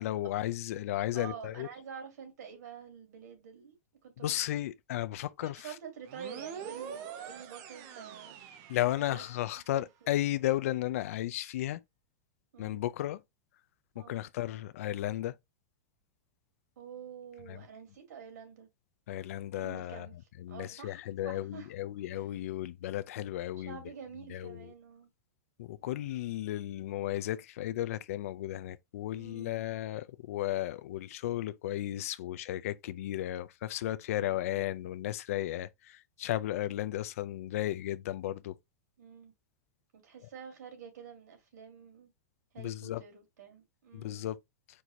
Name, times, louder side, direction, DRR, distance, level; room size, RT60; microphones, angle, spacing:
voice 1, 0.0-1.7 4.2-5.7 8.7-11.8 12.6-13.2 14.0-15.4 17.5-17.6 19.1-20.1 20.4-23.8 24.3-24.7 25.6-38.6 42.6-43.0 43.9-44.4, left 14 dB, 55° left, 0.4 m, -34 dB
voice 2, 1.1-3.8 4.0-4.3 5.4-8.4 8.9-9.2 10.0-10.2 12.5-12.8 13.9-14.2 16.8-18.7 19.5-21.7 22.1-22.3 23.7-25.1 29.1-29.6 34.1-34.6 39.0-39.3 39.9-42.1 42.5-44.3, right 7 dB, 90° right, 2.3 m, -48 dB
sound 1, 6.1-9.6, right 8 dB, 30° right, 0.6 m, -45 dB
4.6 x 2.6 x 4.1 m
supercardioid pair, 175°, 9 cm